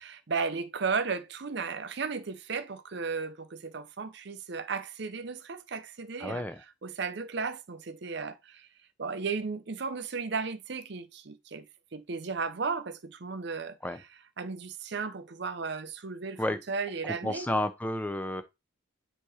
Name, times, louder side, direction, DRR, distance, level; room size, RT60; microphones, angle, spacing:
voice 1, 0.0-6.5 6.8-8.7 9.0-11.7 11.9-13.8 14.4-17.5, right 5 dB, 55° right, 0.6 m, -35 dB
voice 2, 6.2-6.6 13.8-14.0 16.4-16.6 17.2-18.4, left 1 dB, 10° left, 0.5 m, -31 dB
7.5 x 2.9 x 4.8 m
head